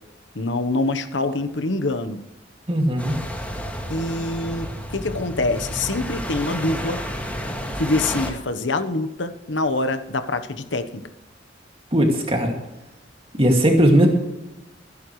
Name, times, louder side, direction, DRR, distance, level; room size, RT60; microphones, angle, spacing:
voice 1, 0.3-2.2 3.9-7.0 7.8-11.1, left 2 dB, 85° left, 10 dB, 1.1 m, -25 dB
voice 2, 2.7-3.1 11.9-12.5 13.3-14.1, right 1 dB, 30° right, 2 dB, 2.3 m, -17 dB
sound 1, 3.0-8.3, equal, 10° left, 2.1 m, -31 dB
25.5 x 11.0 x 3.2 m, 0.97 s
head